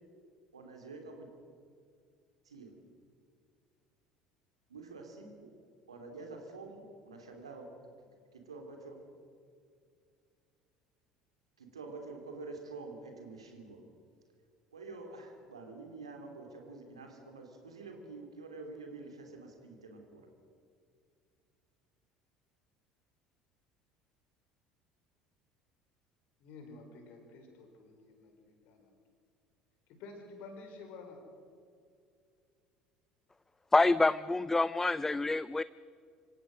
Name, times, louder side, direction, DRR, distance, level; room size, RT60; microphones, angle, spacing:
voice 1, 0.5-1.3 2.4-2.8 4.7-5.6 5.9-7.8 8.3-9.1 11.6-13.8 14.7-20.3, right 3 dB, 80° right, 3 dB, 3.0 m, -47 dB
voice 2, 26.4-28.9 29.9-31.2, left 3 dB, 55° left, 4 dB, 4.5 m, -50 dB
voice 3, 33.7-35.6, left 2 dB, 10° left, 18 dB, 0.4 m, -27 dB
26.0 x 16.0 x 6.5 m, 2.3 s
figure-of-eight pair, 60°, 3 cm